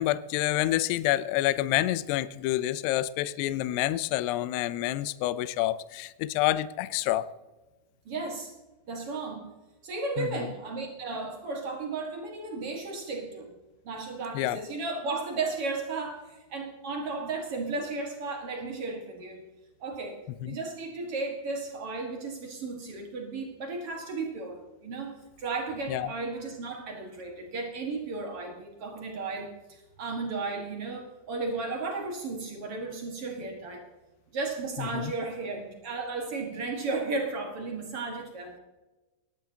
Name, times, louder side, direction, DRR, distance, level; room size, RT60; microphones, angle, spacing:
voice 1, 0.0-7.3 10.2-10.4 14.3-14.6 20.4-20.6 25.9-26.1 34.8-35.1, left 15 dB, 90° left, 15 dB, 2.3 m, -28 dB
voice 2, 8.0-8.5 8.9-9.5 9.8-13.5 13.8-19.4 19.8-33.8 34.3-38.6, right 3 dB, 75° right, 1 dB, 1.3 m, -34 dB
19.5 x 12.0 x 2.8 m, 1.1 s
omnidirectional pair, 5.5 m